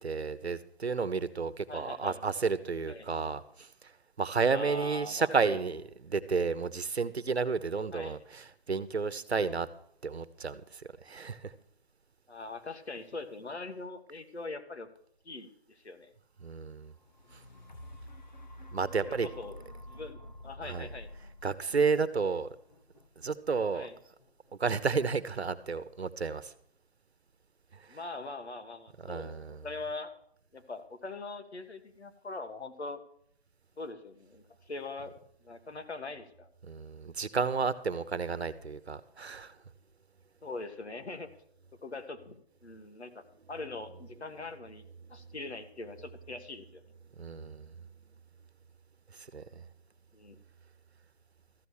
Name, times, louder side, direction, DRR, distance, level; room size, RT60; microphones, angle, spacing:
voice 1, 0.0-3.9 4.2-9.7 10.0-11.5 16.4-16.9 17.3-17.4 18.7-19.3 20.6-20.9 21.4-22.5 23.2-23.9 24.6-26.5 27.7-28.0 29.0-29.6 36.6-39.6 47.2-47.7 49.1-49.6, right 5 dB, 75° right, 14 dB, 1.1 m, -32 dB
voice 2, 1.7-2.2 2.9-3.1 4.5-5.6 7.9-8.2 12.3-14.9 15.2-16.1 19.0-19.6 19.9-21.1 23.7-23.9 27.9-30.1 30.5-33.0 33.8-35.1 35.4-36.5 40.4-41.3 41.8-44.8 45.1-46.8 50.1-50.4, left 3 dB, 85° left, 7 dB, 1.9 m, -42 dB
sound 1, 16.9-25.0 25.5-25.6, left 1 dB, 45° left, 0.9 m, -50 dB
14.0 x 7.1 x 6.5 m, 0.71 s
hypercardioid pair, 180°, 32 cm